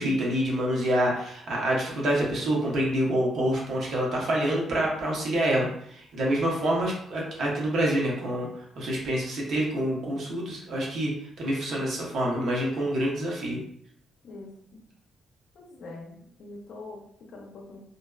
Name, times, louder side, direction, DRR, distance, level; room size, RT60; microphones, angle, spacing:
voice 1, 0.0-8.5 8.8-13.6, right 1 dB, 60° right, -3 dB, 0.8 m, -27 dB
voice 2, 14.2-14.8 15.5-17.8, left 2 dB, 60° left, 0 dB, 0.6 m, -44 dB
2.6 x 2.3 x 2.2 m, 0.69 s
cardioid pair, 130°, 0 cm